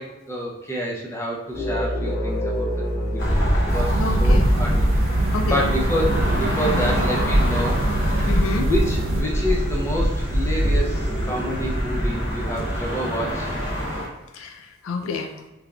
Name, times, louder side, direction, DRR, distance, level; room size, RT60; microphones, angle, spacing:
voice 1, 0.0-4.9 5.4-8.3 8.6-13.5, equal, 15° left, -2 dB, 0.5 m, -28 dB
sound 1, 1.5-7.0, right 1 dB, 30° left, 1.2 m, -27 dB
sound 2, 3.2-14.1, equal, 60° left, 1.2 m, -23 dB
sound 3, 3.7-9.2, right 2 dB, 65° right, 0.3 m, -27 dB
voice 2, 4.0-4.7 5.3-5.8 6.6-6.9 8.3-8.7 14.3-15.4, left 3 dB, 80° left, 6 dB, 0.4 m, -29 dB
3.6 x 3.3 x 2.3 m, 1.0 s
head